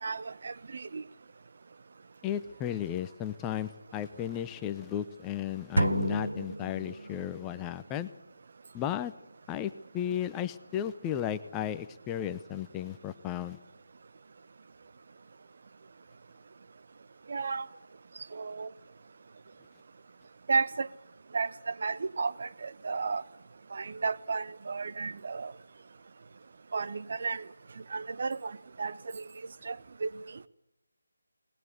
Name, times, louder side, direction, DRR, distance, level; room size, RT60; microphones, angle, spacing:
voice 1, 0.0-1.0 17.3-17.7 18.3-18.7 20.5-20.9 21.3-23.2 23.7-25.5 26.7-27.4 27.9-29.2 29.6-30.1, right 4 dB, 45° right, 13 dB, 0.9 m, -33 dB
voice 2, 2.2-8.1 8.7-9.1 9.5-13.6, left 11 dB, 10° left, 11 dB, 0.7 m, -34 dB
sound 1, 5.8-7.4, right 1 dB, 75° right, 1.0 m, -30 dB
20.5 x 20.0 x 8.2 m, 0.90 s
figure-of-eight pair, 155°, 0 cm